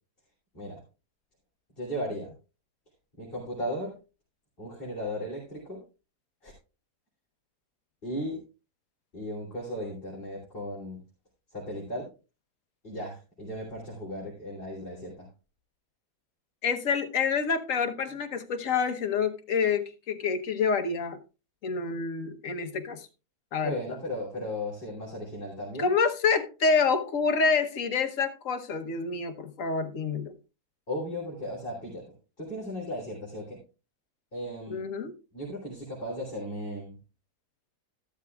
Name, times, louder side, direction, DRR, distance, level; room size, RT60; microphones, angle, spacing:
voice 1, 1.8-2.3 3.2-3.9 4.6-5.8 6.4-6.5 8.0-8.4 9.1-11.0 11.5-12.1 12.8-15.3 23.6-25.9 30.9-33.6 34.3-34.8 35.3-37.0, equal, 35° left, -5 dB, 3.2 m, -36 dB
voice 2, 16.6-21.2 21.6-23.1 23.5-23.8 25.8-30.4 34.7-35.1, left 5 dB, 55° left, 5 dB, 1.3 m, -27 dB
13.0 x 12.0 x 2.3 m, 0.32 s
omnidirectional pair, 1.7 m